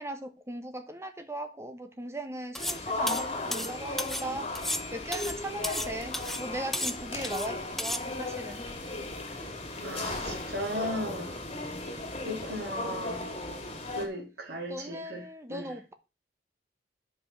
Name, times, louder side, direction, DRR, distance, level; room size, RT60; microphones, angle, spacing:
voice 1, 0.0-4.5 4.9-8.6 14.7-15.9, right 1 dB, 15° right, 1.1 m, -38 dB
sound 1, 2.6-14.1, left 2 dB, 35° left, 2.2 m, -36 dB
sound 2, 2.6-2.8 3.1-4.3 4.6-5.9 6.1-6.5 6.7-7.5 7.8-8.0, left 1 dB, ahead, 0.4 m, -33 dB
voice 2, 9.8-11.4 12.2-13.2 13.9-15.7, equal, 60° right, 2.6 m, -37 dB
9.8 x 5.3 x 5.8 m
head